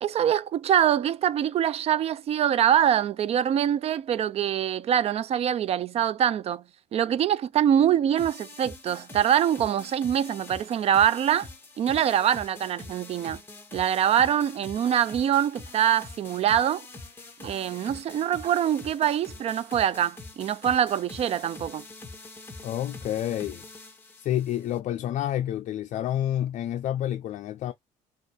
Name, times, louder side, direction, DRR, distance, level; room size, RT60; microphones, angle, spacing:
voice 1, 0.0-6.6 6.9-11.5 11.8-13.4 13.7-16.9 17.4-21.8, right 10 dB, 40° right, 0.4 m, -24 dB
sound 1, 8.2-24.8, left 2 dB, 15° left, 1.7 m, -45 dB
voice 2, 22.6-23.6 24.2-27.7, left 11 dB, 55° left, 0.5 m, -29 dB
6.3 x 2.5 x 3.4 m
cardioid pair, 125°, 15 cm